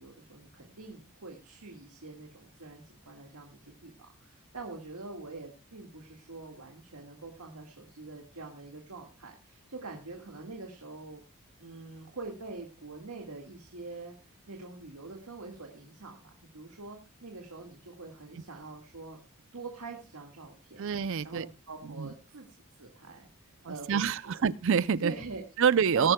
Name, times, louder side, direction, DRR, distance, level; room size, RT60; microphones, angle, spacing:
voice 1, 0.0-3.9 4.2-11.2 11.6-19.3 19.5-20.8 21.2-24.4 25.0-25.4 25.9-26.1, right 3 dB, 80° right, 1.9 m, -44 dB
voice 2, 20.8-21.5 21.8-22.1 23.7-25.1 25.6-26.1, right 7 dB, 60° right, 0.5 m, -26 dB
19.5 x 11.0 x 2.2 m
head